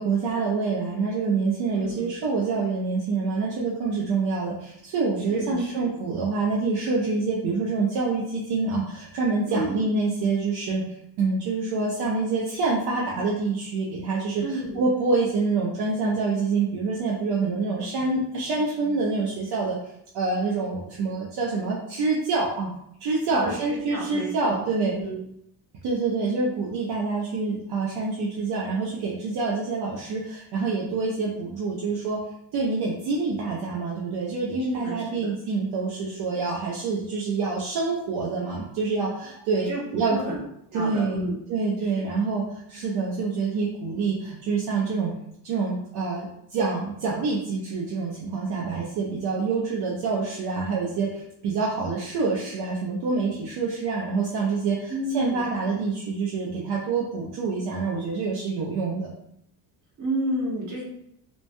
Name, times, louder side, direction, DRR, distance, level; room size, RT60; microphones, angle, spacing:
voice 1, 0.0-19.8 20.1-22.7 23.0-24.9 25.8-32.2 32.5-40.2 40.7-45.1 45.4-59.1, right 4 dB, 65° right, -4 dB, 0.6 m, -26 dB
voice 2, 1.7-2.1 5.3-5.9 9.5-9.8 14.4-14.9 23.3-25.2 34.6-35.4 39.5-39.8 40.1-40.4 40.7-41.4 41.8-42.0 54.9-55.5 60.0-60.8, right 1 dB, 45° right, -4 dB, 1.0 m, -31 dB
3.0 x 2.1 x 2.6 m, 0.75 s
cardioid pair, 135°, 42 cm